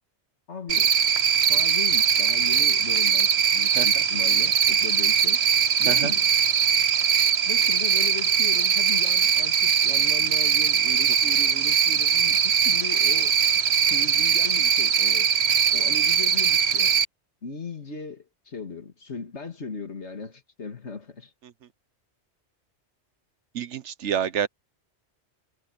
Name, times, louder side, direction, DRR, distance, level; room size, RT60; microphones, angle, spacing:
voice 1, 0.5-0.9 1.5-5.4 5.8-6.2 7.5-13.3 13.9-15.3 15.7-16.9 17.4-21.3, left 4 dB, 80° left, 2.6 m, -37 dB
Cricket, 0.7-17.1, right 7 dB, 70° right, 1.2 m, -21 dB
voice 2, 3.7-4.0 5.9-6.1 23.5-24.5, right 8 dB, 90° right, 1.2 m, -28 dB
omnidirectional pair, 1.2 m